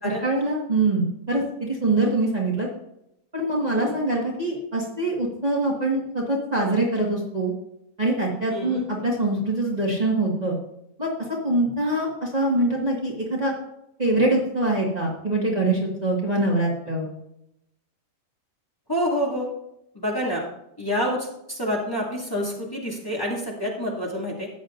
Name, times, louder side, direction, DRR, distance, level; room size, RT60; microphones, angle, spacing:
voice 1, 0.2-2.7 3.3-7.5 8.0-10.6 11.0-11.1 11.4-13.5 14.0-17.1, right 2 dB, 30° right, -3 dB, 1.9 m, -24 dB
voice 2, 8.5-8.8 18.9-19.5 19.9-20.4 20.8-24.5, equal, 15° left, -4 dB, 2.4 m, -27 dB
13.5 x 9.7 x 2.6 m, 0.81 s
omnidirectional pair, 1.4 m